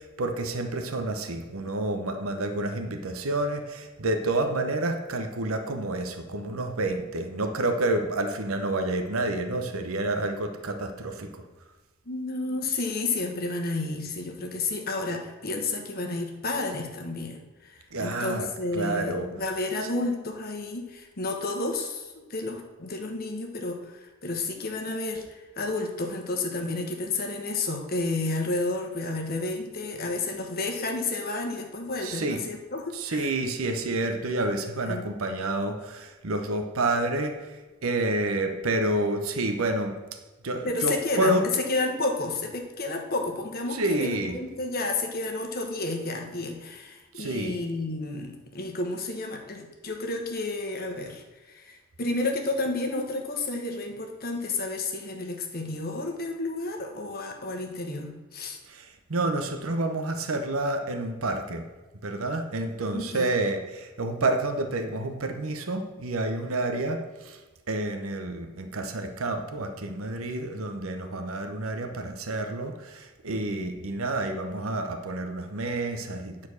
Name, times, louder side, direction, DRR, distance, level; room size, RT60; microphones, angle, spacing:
voice 1, 0.0-11.4 17.9-18.5 18.7-19.3 32.0-32.4 32.9-40.0 40.4-41.5 43.7-44.4 47.1-47.6 58.7-61.7 62.0-67.4 67.7-76.5, right 2 dB, 85° right, 7 dB, 0.9 m, -29 dB
voice 2, 12.1-33.3 34.9-35.1 40.6-58.6 62.9-63.3, left 2 dB, 45° left, 3 dB, 1.1 m, -31 dB
9.8 x 4.4 x 6.3 m, 1.2 s
head